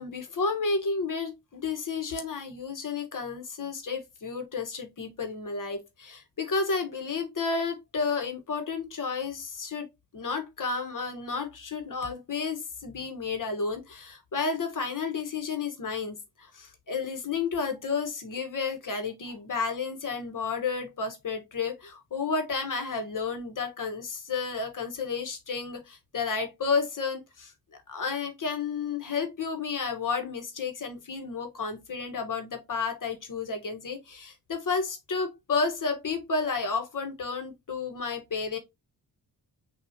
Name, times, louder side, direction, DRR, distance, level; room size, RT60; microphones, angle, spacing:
voice 1, 0.0-9.9 10.1-27.5 27.9-38.6, left 4 dB, 50° left, 1.3 m, -31 dB
6.0 x 2.7 x 2.8 m
cardioid pair, 70°, 40 cm